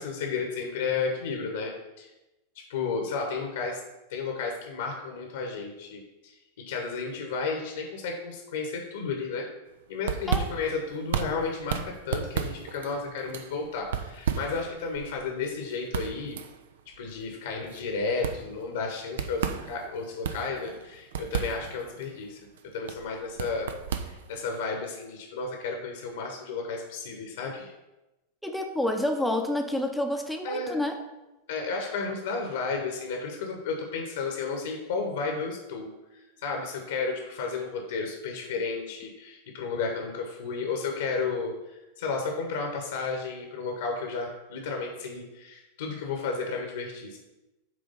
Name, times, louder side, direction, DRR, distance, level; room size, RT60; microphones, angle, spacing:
voice 1, 0.0-1.7 2.0-2.1 2.7-3.8 4.1-6.3 6.7-9.5 9.9-16.4 17.0-22.4 22.7-23.7 24.0-27.7 30.4-30.8 31.5-35.9 36.4-47.2, left 4 dB, 60° left, 2 dB, 1.1 m, -32 dB
sound 1, 9.7-24.6, right 8 dB, 60° right, 0.5 m, -35 dB
voice 2, 28.4-31.0, left 1 dB, ahead, 3 dB, 0.8 m, -28 dB
7.8 x 3.4 x 5.4 m, 1.0 s
figure-of-eight pair, 90°, 0 cm